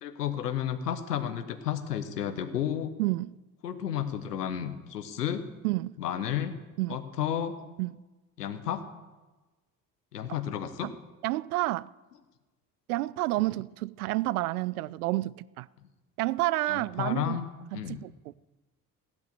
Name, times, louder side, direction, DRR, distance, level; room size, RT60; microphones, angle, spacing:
voice 1, 0.0-2.9 3.6-5.4 6.0-6.6 6.9-7.6 8.4-8.8 10.1-10.9 16.7-18.0, left 9 dB, 80° left, 1.2 m, -32 dB
voice 2, 3.0-3.3 5.6-6.0 6.8-7.0 7.8-7.9 10.8-10.9 11.2-11.9 12.9-15.7 16.2-17.4 17.7-18.1, right 18 dB, 75° right, 0.5 m, -29 dB
16.0 x 10.5 x 6.7 m
figure-of-eight pair, 50°, 46 cm